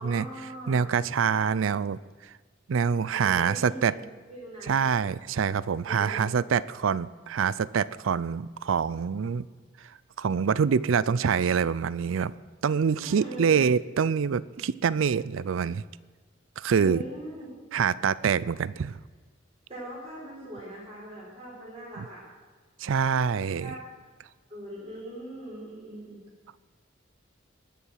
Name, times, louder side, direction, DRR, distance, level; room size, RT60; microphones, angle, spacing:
voice 1, 0.0-0.9 3.1-4.0 4.3-4.8 5.9-6.3 13.0-13.6 16.8-17.5 19.7-22.3 23.6-23.9 24.5-26.2, right 1 dB, 30° right, -5 dB, 5.5 m, -41 dB
voice 2, 0.7-2.0 2.7-3.9 4.7-9.5 10.2-12.3 12.6-15.8 16.6-17.0 17.7-19.0 22.0-22.1 22.8-23.7, right 6 dB, 90° right, 19 dB, 0.4 m, -25 dB
20.0 x 6.9 x 6.4 m, 1.4 s
head